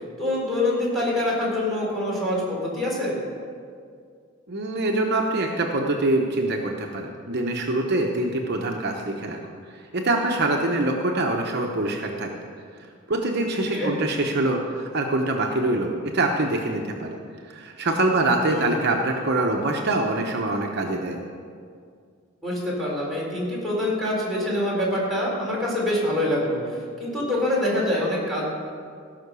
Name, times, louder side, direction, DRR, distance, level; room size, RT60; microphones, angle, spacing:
voice 1, 0.2-3.2 13.7-13.9 18.4-18.9 22.4-28.5, left 1 dB, ahead, -6 dB, 4.0 m, -25 dB
voice 2, 4.5-9.4 9.7-12.3 13.1-17.2 17.5-21.2, right 2 dB, 55° right, 1 dB, 1.0 m, -24 dB
17.0 x 5.9 x 6.9 m, 2.2 s
head